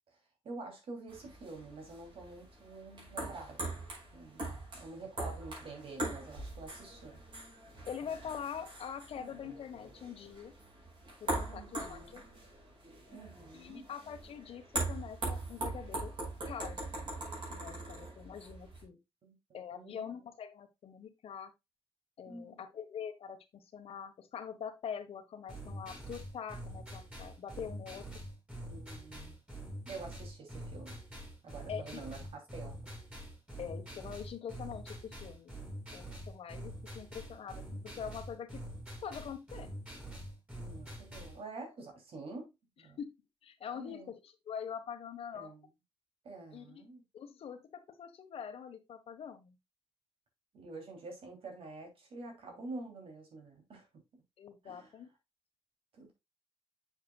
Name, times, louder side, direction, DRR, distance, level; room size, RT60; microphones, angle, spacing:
voice 1, 0.4-3.8 4.1-7.2 11.5-12.2 13.1-13.8 19.2-20.1 22.3-22.7 28.6-29.4 29.8-31.0 31.4-32.9 40.6-42.5 42.8-43.0 43.7-44.1 45.3-45.7 46.2-47.0 50.5-53.9 54.6-54.9 55.9-56.1, right 3 dB, 75° right, 3.0 m, -47 dB
sound 1, 1.1-18.8, right 2 dB, 55° right, 5.4 m, -42 dB
voice 2, 7.9-10.5 11.2-12.2 13.5-16.1 16.4-16.8 17.5-19.0 19.5-21.5 22.2-28.2 31.7-32.0 33.6-35.5 35.9-38.6 39.0-39.7 43.0-43.1 43.4-45.5 46.5-46.8 47.1-49.5 54.4-55.1, left 7 dB, 85° left, 1.3 m, -44 dB
sound 2, 25.5-41.4, right 1 dB, 15° right, 4.5 m, -45 dB
7.5 x 7.3 x 2.3 m
wide cardioid pair, 155°, 10 cm